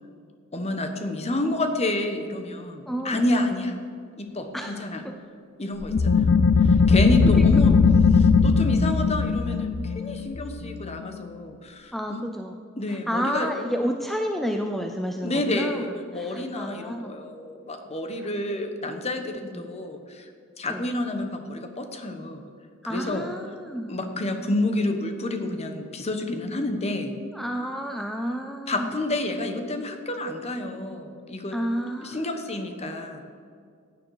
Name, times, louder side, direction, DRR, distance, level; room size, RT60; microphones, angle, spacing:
voice 1, 0.5-3.8 4.2-5.0 5.6-7.7 8.1-12.2 12.8-13.5 15.2-22.4 22.9-23.2 23.9-27.1 28.7-31.6 32.0-33.2, left 1 dB, 30° left, 6 dB, 1.1 m, -29 dB
voice 2, 2.9-3.6 4.5-5.1 7.4-7.5 11.9-12.5 12.9-17.1 19.3-19.7 20.7-20.8 22.8-23.9 27.3-28.9 31.5-32.4, equal, ahead, 4 dB, 0.5 m, -31 dB
sound 1, 5.8-11.2, left 5 dB, 60° left, 0.5 m, -19 dB
15.5 x 9.4 x 4.8 m, 2.2 s
head